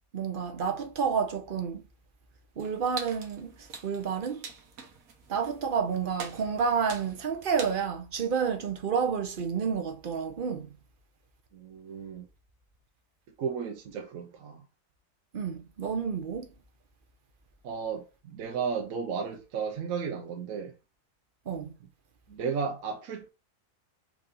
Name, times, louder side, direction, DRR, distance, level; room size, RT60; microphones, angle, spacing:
voice 1, 0.1-1.8 2.6-4.4 5.3-10.7 15.3-16.5 21.5-21.7, right 6 dB, 50° right, 0.7 m, -30 dB
sound 1, 2.6-7.9, right 6 dB, 90° right, 1.4 m, -45 dB
voice 2, 11.5-12.3 13.4-14.6 17.6-20.7 22.3-23.3, right 6 dB, 75° right, 1.1 m, -34 dB
4.7 x 2.8 x 3.7 m
omnidirectional pair, 1.5 m